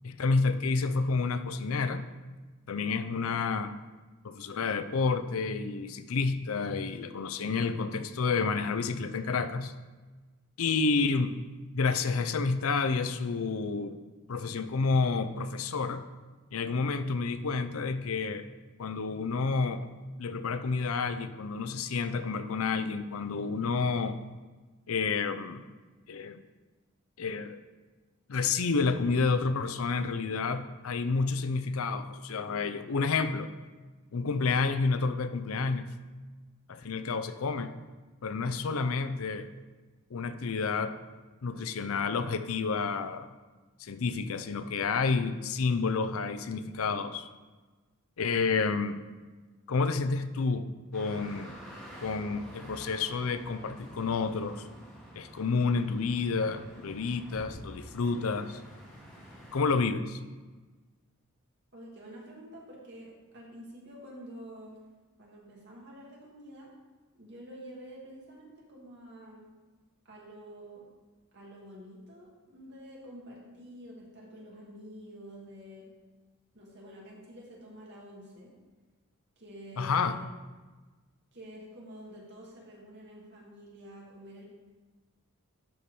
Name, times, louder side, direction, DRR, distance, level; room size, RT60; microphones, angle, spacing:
voice 1, 0.0-2.0 2.7-3.7 4.2-9.7 10.6-11.3 11.7-14.0 14.3-16.0 16.5-18.5 18.8-19.9 20.2-24.2 24.9-25.7 26.1-26.4 27.2-27.6 28.3-33.5 34.1-35.9 36.7-37.7 38.2-39.5 40.1-40.9 41.4-43.3 43.8-47.3 48.2-49.0 49.7-51.6 52.0-54.6 55.2-58.6 59.5-60.2 79.8-80.2, left 4 dB, 80° left, 11 dB, 0.5 m, -29 dB
sound 1, 50.9-59.7, equal, 5° left, 1.9 m, -48 dB
voice 2, 61.7-64.7 65.2-66.7 67.1-69.5 70.0-70.8 71.3-75.9 76.5-78.5 79.4-80.2 81.3-84.5, equal, 55° right, -3 dB, 2.3 m, -48 dB
12.0 x 4.4 x 4.9 m, 1.3 s
head